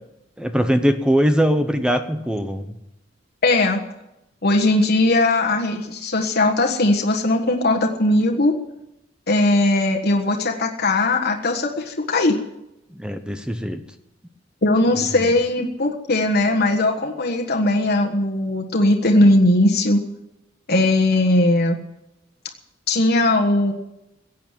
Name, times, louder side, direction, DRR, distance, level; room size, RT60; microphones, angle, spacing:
voice 1, 0.4-2.7 12.9-13.8, equal, 5° right, 8 dB, 0.8 m, -21 dB
voice 2, 3.4-3.8 4.4-8.5 9.3-12.4 14.6-20.0 20.7-21.8 22.9-23.7, left 2 dB, 55° left, 1 dB, 1.5 m, -19 dB
16.5 x 8.5 x 9.1 m, 0.88 s
head